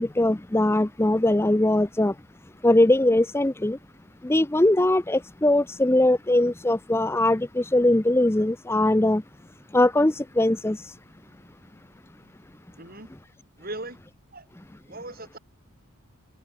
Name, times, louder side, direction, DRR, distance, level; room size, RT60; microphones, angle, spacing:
voice 1, 0.0-2.1 2.6-3.8 4.2-9.2 9.7-10.8, left 1 dB, 10° left, 0.5 m, -21 dB
voice 2, 12.8-13.1 13.6-14.0 14.3-14.5 14.9-15.4, right 2 dB, 40° right, 6.4 m, -38 dB
head